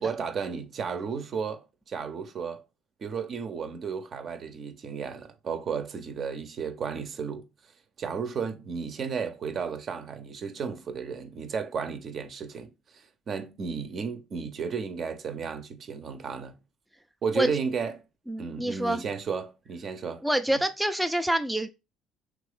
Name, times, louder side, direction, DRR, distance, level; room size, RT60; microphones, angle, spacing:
voice 1, 0.0-2.6 3.0-7.4 8.0-16.6 17.2-18.0 18.4-20.2 20.5-20.6, right 6 dB, 50° right, 0.6 m, -33 dB
voice 2, 18.3-19.0 20.2-21.7, right 1 dB, 5° right, 0.3 m, -26 dB
3.0 x 2.5 x 3.5 m
hypercardioid pair, 60°, 0 cm